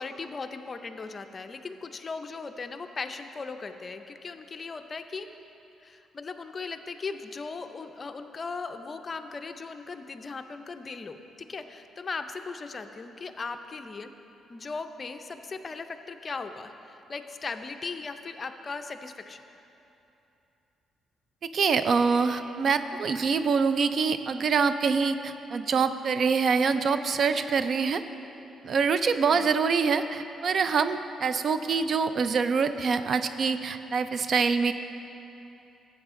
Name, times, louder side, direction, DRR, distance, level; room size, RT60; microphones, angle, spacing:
voice 1, 0.0-5.3 5.8-11.2 11.5-14.1 14.5-19.4 29.3-29.6, left 4 dB, 35° left, 8 dB, 0.5 m, -38 dB
voice 2, 21.5-28.0 28.6-34.7, right 5 dB, 55° right, 11 dB, 0.4 m, -25 dB
12.5 x 8.2 x 3.7 m, 2.9 s
cardioid pair, 90°, 0 cm